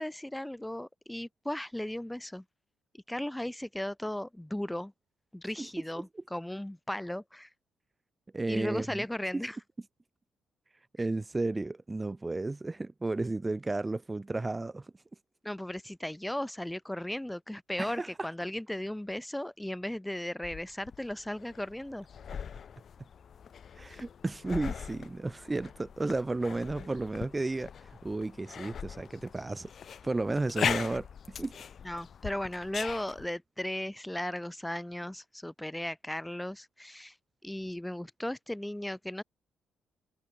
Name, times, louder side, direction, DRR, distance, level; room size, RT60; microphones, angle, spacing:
voice 1, 0.0-2.4 2.9-4.9 5.3-7.5 8.5-9.6 15.4-22.1 31.8-37.1 37.4-39.2, left 1 dB, 5° left, 1.6 m, -36 dB
voice 2, 8.3-9.0 9.3-9.4 11.0-14.9 17.8-18.3 23.7-29.7 30.0-31.6, right 2 dB, 20° right, 1.4 m, -33 dB
sound 1, 20.4-33.3, left 7 dB, 55° left, 7.1 m, -40 dB
cardioid pair, 90°, 0 cm